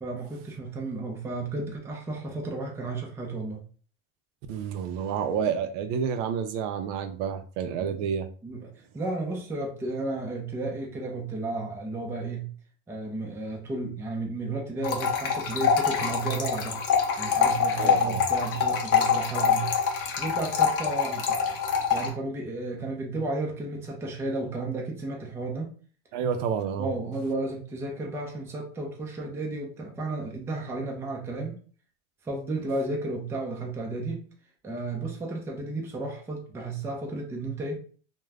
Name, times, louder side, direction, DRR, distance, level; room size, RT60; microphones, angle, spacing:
voice 1, 0.0-3.6 7.8-8.0 8.4-12.5 12.9-16.8 17.2-21.6 21.9-25.7 26.8-31.6 32.2-34.3 34.6-37.8, right 2 dB, 5° right, 0.4 m, -33 dB
voice 2, 4.5-8.3 17.8-18.2 26.1-26.9, right 7 dB, 60° right, 0.5 m, -29 dB
sound 1, 14.8-22.1, left 6 dB, 35° left, 0.6 m, -25 dB
2.3 x 2.1 x 3.3 m
supercardioid pair, 125°, 42 cm